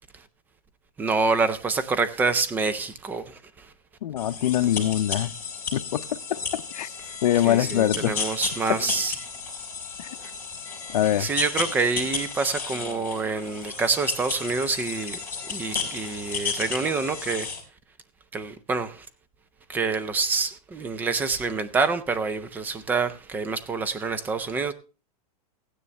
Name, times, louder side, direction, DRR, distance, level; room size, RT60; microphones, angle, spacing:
voice 1, 1.0-3.7 7.4-9.1 11.2-15.2 15.5-17.5 18.3-19.1 19.7-24.7, right 4 dB, 10° right, 0.5 m, -27 dB
voice 2, 4.0-5.3 5.7-6.9 7.2-8.2 8.7-8.8 10.0-10.1 10.9-11.3, left 12 dB, 80° left, 0.7 m, -24 dB
sound 1, 4.2-17.6, left 5 dB, 10° left, 3.6 m, -33 dB
15.5 x 9.7 x 3.2 m
supercardioid pair, 160°, 20 cm